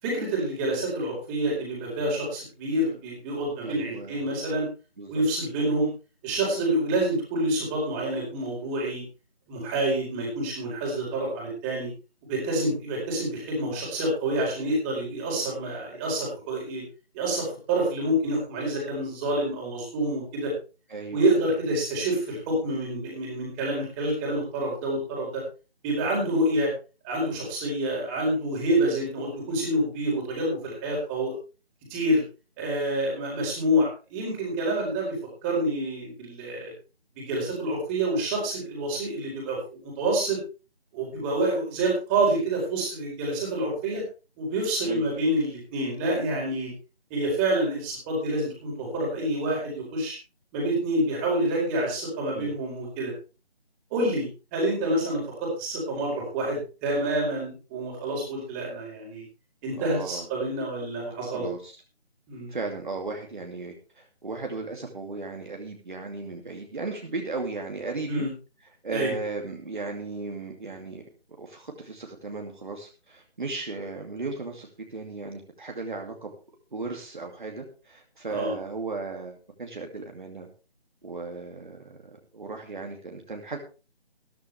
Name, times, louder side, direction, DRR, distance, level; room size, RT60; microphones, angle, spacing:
voice 1, 0.0-4.6 5.1-5.9 6.2-9.0 9.5-11.9 12.3-16.8 17.1-20.5 21.1-25.4 25.8-26.7 27.0-31.3 31.9-32.2 32.6-35.1 35.4-36.7 37.2-40.4 40.9-44.0 44.4-46.7 47.1-50.2 50.5-53.1 53.9-59.2 59.6-61.5 62.3-62.5 68.1-68.3 68.9-69.1 78.3-78.5, right 1 dB, 10° right, -3 dB, 4.3 m, -27 dB
voice 2, 3.6-4.2 5.0-5.1 20.9-21.4 44.8-45.0 52.3-52.5 59.8-60.2 61.3-61.7 62.5-68.2 68.8-71.1 71.4-76.3 76.7-80.5 81.0-82.0 82.3-83.6, right 3 dB, 50° right, 2 dB, 2.5 m, -36 dB
14.5 x 14.0 x 3.4 m, 0.33 s
figure-of-eight pair, 160°, 32 cm